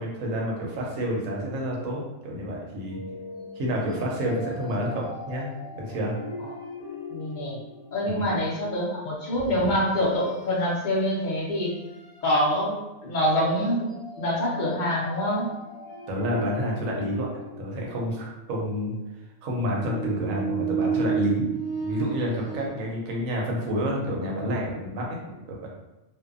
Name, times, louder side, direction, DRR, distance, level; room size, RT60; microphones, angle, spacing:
voice 1, 0.0-3.0 3.5-6.1 8.0-8.3 16.1-17.3 17.6-18.9 19.4-21.5 21.8-25.2 25.5-25.6, equal, 85° right, -2 dB, 1.0 m, -29 dB
sound 1, 2.9-8.2 9.3-10.6 11.0-11.2 11.8-12.3 13.9-18.3 19.6-22.7, right 3 dB, 70° left, 1.0 m, -35 dB
voice 2, 7.1-7.6 7.9-11.8 12.2-12.8 13.0-13.9 14.2-15.5, equal, 50° left, -4 dB, 0.6 m, -25 dB
2.6 x 2.1 x 2.4 m, 1.0 s
omnidirectional pair, 1.3 m